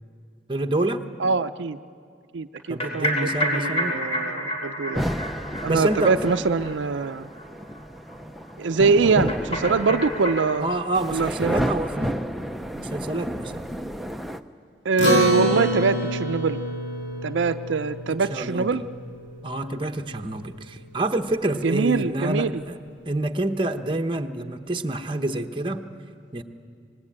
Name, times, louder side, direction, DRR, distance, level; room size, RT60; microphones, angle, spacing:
voice 1, 0.5-1.1 2.7-4.1 5.6-6.2 10.6-12.2 12.7-13.7 18.1-18.8 19.4-22.8 23.0-25.8 26.3-26.4, right 2 dB, 25° right, 6 dB, 0.9 m, -27 dB
voice 2, 1.2-1.8 2.3-5.0 5.6-7.3 8.6-10.7 11.1-11.6 14.8-16.6 17.2-18.8 21.6-22.5, right 4 dB, 90° right, 10 dB, 0.5 m, -23 dB
sound 1, 2.6-7.1 7.4-7.5 7.7-7.8 8.1-8.2 9.3-10.6, equal, 35° left, 3.6 m, -29 dB
sound 2, 4.9-14.4, equal, ahead, 0.5 m, -31 dB
Acoustic guitar, 15.0-19.7, equal, 90° left, 3.4 m, -27 dB
26.5 x 19.5 x 8.8 m, 2.3 s
head